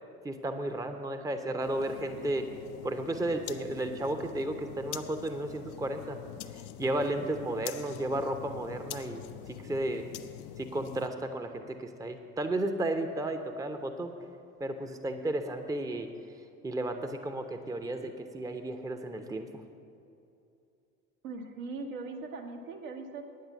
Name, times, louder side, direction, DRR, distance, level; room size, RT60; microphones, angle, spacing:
voice 1, 0.2-2.5 2.8-6.2 6.5-9.2 9.5-10.0 10.6-14.1 14.6-16.1 16.6-19.6, right 1 dB, 10° right, 7 dB, 0.8 m, -33 dB
sound 1, 1.6-11.1, left 12 dB, 55° left, 0.6 m, -45 dB
voice 2, 21.2-23.2, right 3 dB, 70° right, 1 dB, 1.5 m, -40 dB
9.4 x 9.4 x 7.2 m, 2.7 s
figure-of-eight pair, 60°, 44 cm